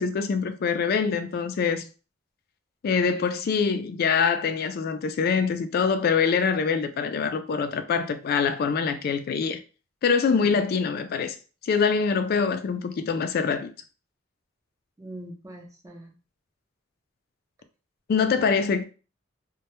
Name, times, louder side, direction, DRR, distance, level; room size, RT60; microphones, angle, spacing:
voice 1, 0.0-1.9 2.8-9.6 10.0-11.4 11.6-13.7 18.1-18.8, left 5 dB, 50° left, 0.3 m, -24 dB
voice 2, 15.0-16.1, right 1 dB, 15° right, 0.5 m, -42 dB
2.1 x 2.1 x 2.9 m
head